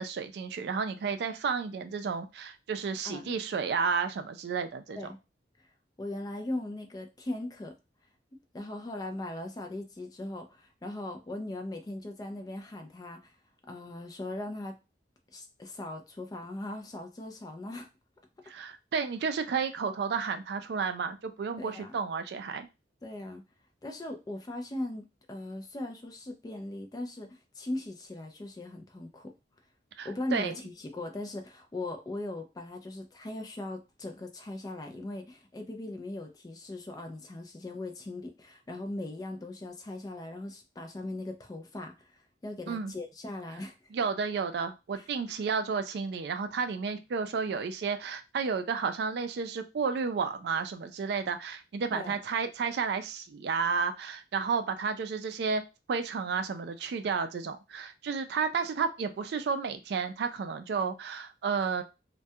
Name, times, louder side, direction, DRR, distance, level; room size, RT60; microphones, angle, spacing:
voice 1, 0.0-5.0 18.5-22.7 30.0-30.5 42.7-42.9 43.9-55.6 55.9-61.8, right 5 dB, 60° right, 0.3 m, -32 dB
voice 2, 6.0-7.7 8.5-13.4 13.7-14.8 15.3-17.9 21.6-22.0 23.0-23.4 23.8-29.3 30.0-43.8 45.0-45.4 51.9-52.2, left 2 dB, 20° left, 0.3 m, -39 dB
2.2 x 2.2 x 2.6 m
head